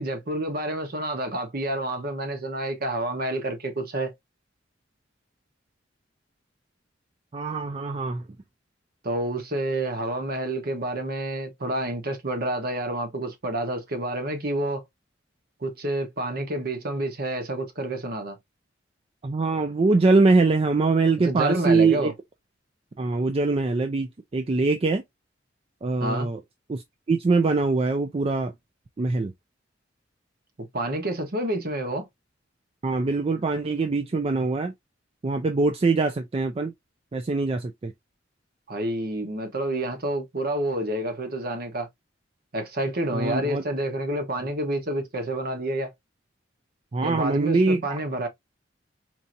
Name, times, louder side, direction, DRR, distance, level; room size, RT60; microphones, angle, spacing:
voice 1, 0.0-4.1 9.0-14.8 15.6-18.4 21.2-22.1 26.0-26.3 30.6-32.1 38.7-41.9 42.5-45.9 47.0-48.3, right 1 dB, 55° right, 1.1 m, -29 dB
voice 2, 7.3-8.2 19.2-22.1 23.0-25.0 25.8-26.4 26.7-26.8 27.1-28.5 29.0-29.3 32.8-34.7 35.2-36.7 37.1-37.9 43.1-43.6 46.9-48.0, right 3 dB, 30° right, 0.4 m, -23 dB
4.5 x 2.7 x 2.5 m
head